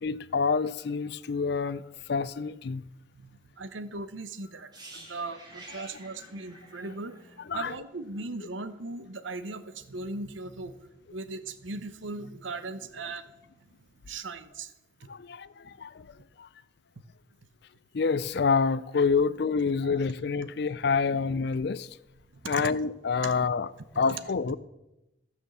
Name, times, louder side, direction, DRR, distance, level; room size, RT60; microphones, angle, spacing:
voice 1, 0.0-1.8 2.1-2.8 5.8-5.9 7.5-7.7 15.1-16.5 17.9-21.9 22.4-23.7 24.0-24.6, left 5 dB, 55° left, 0.4 m, -27 dB
voice 2, 3.1-7.2 7.5-13.3 13.6-13.7 14.0-14.7 15.0-15.1 15.6-15.7 19.8-19.9 22.3-22.7 23.2-23.3 23.9-24.1, right 3 dB, 80° right, 0.9 m, -38 dB
sound 1, 4.7-8.6 8.8-9.0, right 2 dB, 20° right, 2.3 m, -50 dB
14.5 x 6.2 x 7.0 m
head